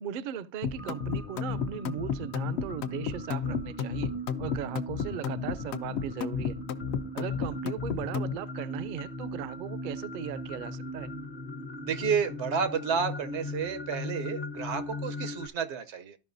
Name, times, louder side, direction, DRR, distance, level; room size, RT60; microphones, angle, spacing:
voice 1, 0.0-4.1 4.4-6.6 7.1-11.1, right 8 dB, 60° right, 0.6 m, -37 dB
sound 1, 0.6-8.4, left 7 dB, 75° left, 0.9 m, -32 dB
sound 2, 0.8-15.5, left 1 dB, 55° left, 1.1 m, -39 dB
voice 2, 11.8-16.2, right 6 dB, 85° right, 1.1 m, -31 dB
13.5 x 5.4 x 2.6 m
omnidirectional pair, 1.1 m